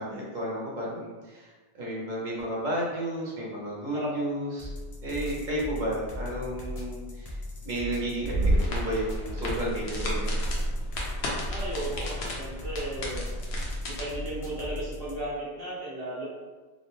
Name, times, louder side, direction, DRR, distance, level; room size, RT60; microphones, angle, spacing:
voice 1, 0.0-4.7 5.0-10.4, right 1 dB, 45° right, -5 dB, 0.9 m, -32 dB
sound 1, 4.6-15.3, left 1 dB, 50° left, 0.5 m, -38 dB
sound 2, 8.2-14.0, equal, 75° left, 0.9 m, -30 dB
voice 2, 11.5-13.2 13.9-16.3, right 1 dB, 20° right, -9 dB, 1.0 m, -35 dB
2.6 x 2.2 x 3.0 m, 1.3 s
omnidirectional pair, 1.1 m